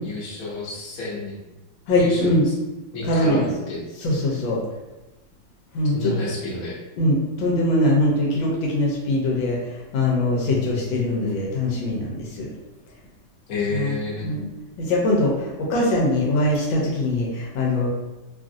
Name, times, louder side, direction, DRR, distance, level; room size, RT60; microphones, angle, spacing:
voice 1, 0.0-1.3 1.9-2.5 2.9-3.8 5.9-6.8 10.4-10.8 13.5-14.3, left 2 dB, 60° left, -4 dB, 1.1 m, -30 dB
voice 2, 1.9-2.4 3.0-3.5 4.0-4.6 5.7-6.1 7.0-9.6 9.9-12.5 13.7-14.0 14.2-14.5 14.8-17.9, left 1 dB, 80° left, -3 dB, 1.4 m, -22 dB
3.2 x 2.4 x 2.5 m, 1.1 s
omnidirectional pair, 2.1 m